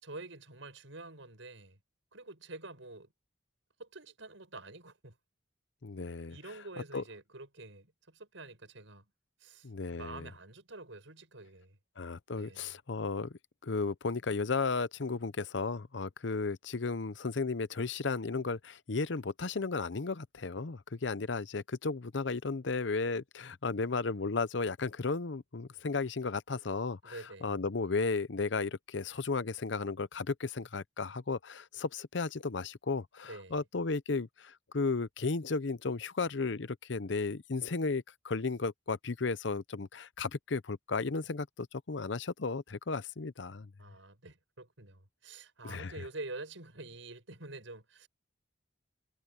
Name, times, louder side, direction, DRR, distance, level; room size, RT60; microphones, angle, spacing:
voice 1, 0.0-1.8 2.1-3.1 3.8-5.1 6.3-9.0 9.4-11.8 12.4-12.8 27.0-27.6 33.2-33.6 43.8-48.1, right 2 dB, 85° right, 6.0 m, -47 dB
voice 2, 5.8-6.4 6.9-7.0 9.6-10.3 12.0-43.7 45.6-45.9, left 4 dB, 65° left, 0.7 m, -34 dB
head